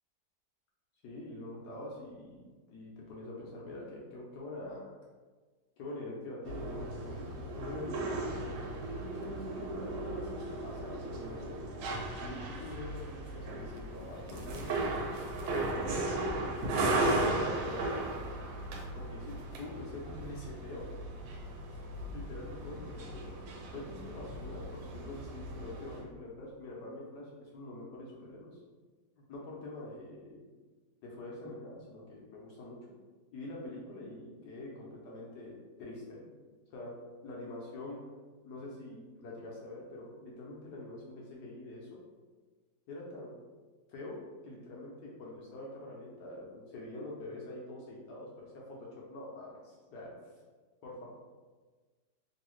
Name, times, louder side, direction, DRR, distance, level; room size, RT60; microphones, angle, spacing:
voice 1, 1.0-4.9 5.8-11.7 12.2-14.9 15.4-18.1 18.9-20.9 21.7-28.6 29.3-30.4 31.0-32.8 33.3-36.3 36.7-36.9 37.2-38.0 38.4-42.0 42.9-43.4 43.9-44.2 44.4-49.6 49.9-50.1 50.8-51.1, left 2 dB, 70° left, -4 dB, 1.1 m, -45 dB
sound 1, 6.4-26.0, right 2 dB, 85° right, 1.3 m, -36 dB
3.0 x 2.7 x 3.0 m, 1.4 s
omnidirectional pair, 2.0 m